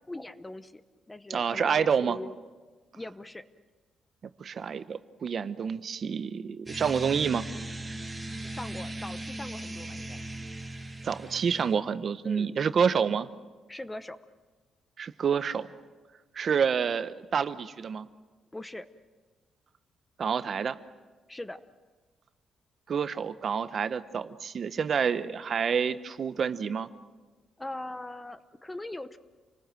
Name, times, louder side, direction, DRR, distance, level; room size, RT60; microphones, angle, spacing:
voice 1, 0.1-0.8 1.1-2.4 2.9-3.4 8.4-10.2 12.2-12.6 13.7-14.2 18.5-18.9 21.3-21.6 27.6-29.2, left 1 dB, 10° left, 12 dB, 0.8 m, -40 dB
voice 2, 1.3-2.2 4.4-7.5 11.0-13.3 15.0-15.7 16.3-18.1 20.2-20.8 22.9-26.9, right 6 dB, 45° right, 12 dB, 0.9 m, -28 dB
sound 1, 6.7-11.7, right 1 dB, 10° right, 3.3 m, -38 dB
28.5 x 20.0 x 7.7 m, 1.3 s
cardioid pair, 130°, 0 cm